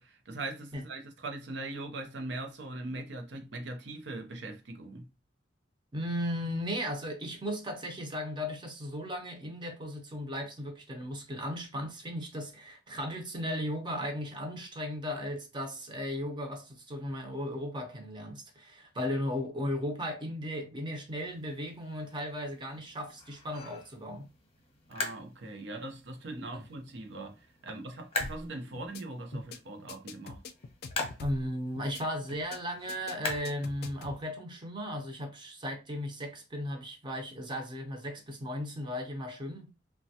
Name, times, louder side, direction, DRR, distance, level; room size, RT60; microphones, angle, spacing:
voice 1, 0.0-5.1 24.9-30.4, right 2 dB, 90° right, 0.6 m, -41 dB
voice 2, 5.9-24.3 26.5-26.6 29.3-29.4 31.2-39.7, equal, 25° right, 0.6 m, -36 dB
sound 1, 21.1-34.3, left 3 dB, 35° left, 0.8 m, -43 dB
sound 2, 28.2-28.5 28.8-29.0 29.3-29.6 29.9-31.5 31.8-32.0 32.3-32.6 32.9-34.2, left 3 dB, 60° left, 0.4 m, -44 dB
3.1 x 2.2 x 2.7 m
head